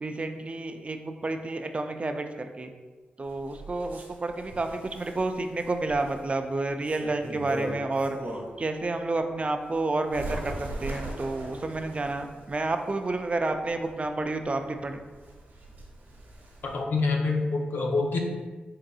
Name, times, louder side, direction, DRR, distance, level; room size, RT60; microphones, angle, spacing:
voice 1, 0.0-2.7 3.2-8.2 8.6-15.0, right 2 dB, 35° right, 6 dB, 0.4 m, -30 dB
Bird, 3.2-8.7 9.1-16.8, right 1 dB, 80° right, 1.1 m, -40 dB
voice 2, 16.6-18.2, left 3 dB, 75° left, 1 dB, 0.6 m, -26 dB
3.8 x 3.8 x 2.3 m, 1.3 s
cardioid pair, 55°, 3 cm